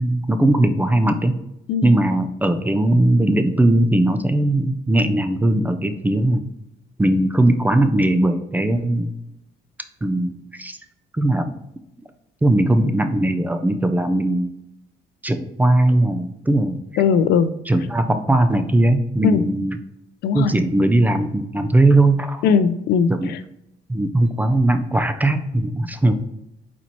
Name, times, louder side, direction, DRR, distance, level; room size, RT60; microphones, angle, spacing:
voice 1, 0.0-1.4 1.8-6.5 7.0-9.1 10.0-10.8 11.1-11.6 12.4-14.5 15.2-17.0 17.7-19.8 20.3-22.4 23.1-23.3 23.9-26.1, right 1 dB, 10° right, 8 dB, 0.4 m, -19 dB
voice 2, 17.0-17.5 19.2-19.4 20.2-20.5 22.4-23.1, left 6 dB, 75° left, 12 dB, 0.4 m, -18 dB
4.3 x 4.2 x 3.0 m, 0.83 s
cardioid pair, 110°, 17 cm